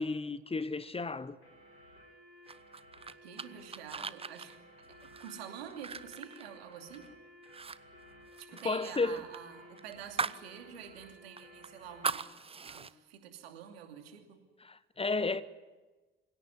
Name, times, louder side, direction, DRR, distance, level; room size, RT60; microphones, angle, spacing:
voice 1, 0.0-1.4 8.6-9.2 14.6-15.4, left 3 dB, 20° left, 1.0 m, -32 dB
sound 1, 1.4-12.2, equal, 90° left, 4.6 m, -56 dB
sound 2, 2.5-7.1 7.4-10.5 10.8-10.9 11.4-12.9, right 5 dB, 20° right, 0.9 m, -40 dB
voice 2, 3.2-4.5 4.9-7.1 8.4-12.3 12.6-14.4, right 9 dB, 70° right, 2.8 m, -48 dB
26.0 x 17.5 x 9.7 m
figure-of-eight pair, 55°, 31 cm